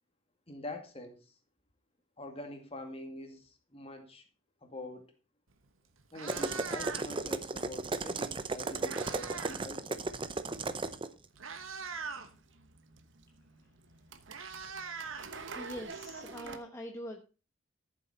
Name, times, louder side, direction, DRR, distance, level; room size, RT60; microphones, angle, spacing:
voice 1, 0.5-1.2 2.2-4.2 4.6-5.1 6.1-10.0, left 1 dB, 30° left, 5 dB, 2.2 m, -45 dB
Meow, 5.5-5.6 6.0-7.3 8.3-9.7 9.9-10.2 10.9-11.0 11.3-12.3 13.6-13.7 13.9-15.8, right 5 dB, 80° right, 1.7 m, -42 dB
sound 1, 6.3-11.1, right 3 dB, 25° right, 0.7 m, -35 dB
sound 2, 11.3-16.6, right 4 dB, 60° right, 1.1 m, -48 dB
voice 2, 14.8-17.2, equal, 15° left, 3 dB, 1.1 m, -45 dB
13.5 x 7.3 x 4.3 m, 0.33 s
head